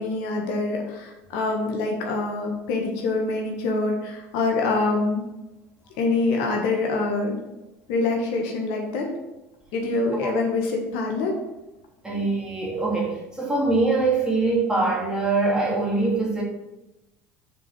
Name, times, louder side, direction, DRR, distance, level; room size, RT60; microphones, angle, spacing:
voice 1, 0.0-5.2 6.0-7.4 7.9-9.1 9.7-11.4, left 3 dB, 65° left, 1 dB, 1.4 m, -25 dB
voice 2, 12.0-16.4, right 3 dB, 10° right, -3 dB, 2.4 m, -23 dB
6.0 x 4.7 x 5.1 m, 0.97 s
hypercardioid pair, 75°, 7 cm